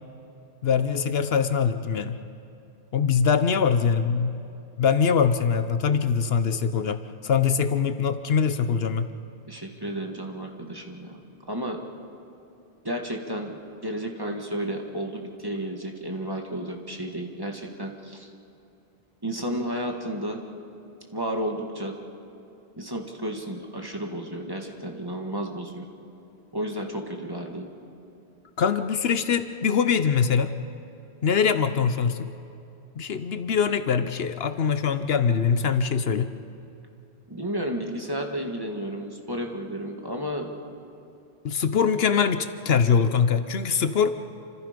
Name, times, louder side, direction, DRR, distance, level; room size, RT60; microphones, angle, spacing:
voice 1, 0.6-2.2 2.9-4.4 4.8-9.1 28.6-30.5 31.2-32.3 33.0-36.3 41.4-44.1, left 6 dB, 70° left, 10 dB, 1.0 m, -23 dB
voice 2, 9.5-11.2 11.5-11.8 12.8-18.3 19.2-20.4 21.1-21.9 22.8-25.8 26.5-27.7 37.3-40.5, right 1 dB, 20° right, 2 dB, 1.8 m, -32 dB
28.0 x 26.0 x 5.2 m, 2.7 s
omnidirectional pair, 1.1 m